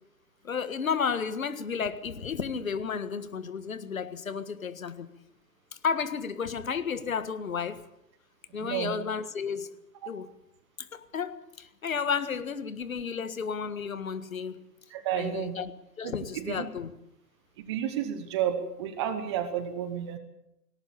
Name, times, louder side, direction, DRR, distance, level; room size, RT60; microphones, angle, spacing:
voice 1, 0.4-5.1 5.7-7.8 8.5-9.7 10.1-10.3 10.8-14.6 15.2-15.7 16.0-16.9, left 6 dB, 55° left, 13 dB, 1.7 m, -32 dB
voice 2, 8.6-9.0 10.0-10.1 14.9-15.6 16.0-16.7 17.6-20.2, right 9 dB, 15° right, 10 dB, 1.1 m, -31 dB
18.0 x 18.0 x 8.6 m, 0.86 s
figure-of-eight pair, 135°, 49 cm